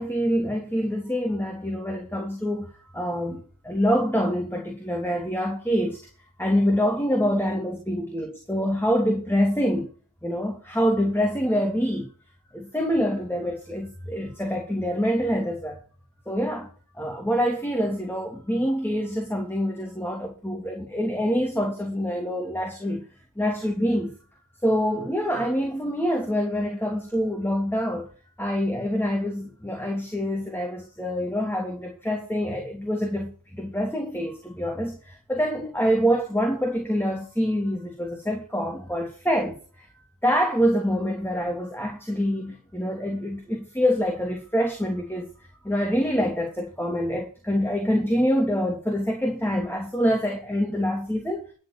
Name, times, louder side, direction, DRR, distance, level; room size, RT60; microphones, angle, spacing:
voice 1, 0.0-6.0 6.4-9.9 10.2-12.1 12.5-15.8 16.3-16.7 16.9-23.0 23.4-24.1 24.6-28.1 28.4-39.9 40.2-45.3 45.6-51.5, equal, 5° left, 3.0 m, -26 dB
13.0 x 5.2 x 7.0 m
wide cardioid pair, 140°, 46 cm